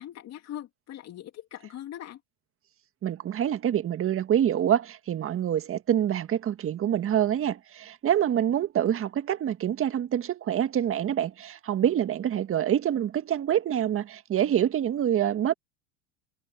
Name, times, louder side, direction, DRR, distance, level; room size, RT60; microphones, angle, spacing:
voice 1, 0.0-2.2, left 12 dB, 50° left, 2.9 m, -41 dB
voice 2, 3.0-15.5, right 10 dB, 40° right, 1.8 m, -26 dB
hypercardioid pair, 85°, 34 cm